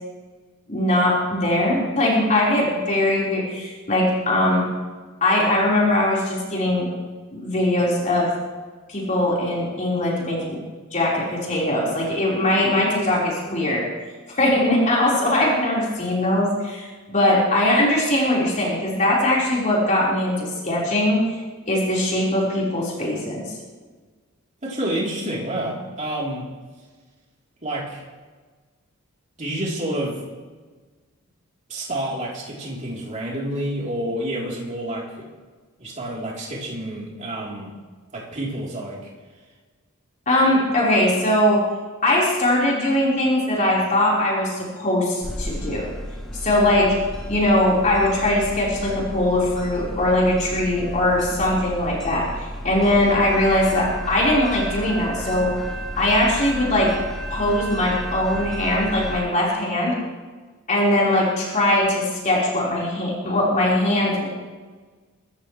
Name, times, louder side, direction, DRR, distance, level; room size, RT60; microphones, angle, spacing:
voice 1, 0.7-4.6 5.2-6.9 7.3-8.3 8.9-10.6 10.9-13.8 14.3-21.2 21.7-23.5 40.3-41.6 42.0-45.9 46.4-46.9 47.3-55.5 56.0-56.9 57.3-60.0 60.7-64.3, left 1 dB, 35° left, -5 dB, 4.6 m, -21 dB
voice 2, 24.6-26.4 27.6-28.0 29.4-30.2 31.7-35.3 35.8-37.7 38.1-39.1, right 1 dB, 35° right, -4 dB, 3.7 m, -29 dB
sound 1, 45.2-59.2, equal, ahead, 2.3 m, -33 dB
24.0 x 14.0 x 3.3 m, 1.4 s
head